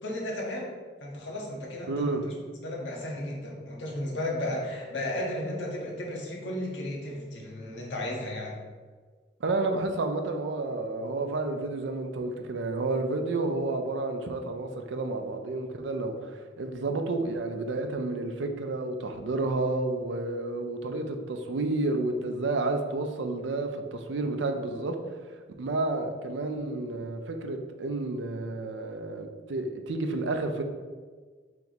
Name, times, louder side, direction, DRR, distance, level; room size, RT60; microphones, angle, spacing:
voice 1, 0.0-2.4 2.6-8.6, left 1 dB, 85° left, -3 dB, 1.0 m, -34 dB
voice 2, 1.9-2.2 9.4-25.0 25.6-30.6, right 2 dB, 85° right, 6 dB, 0.4 m, -30 dB
3.3 x 2.9 x 4.0 m, 1.5 s
head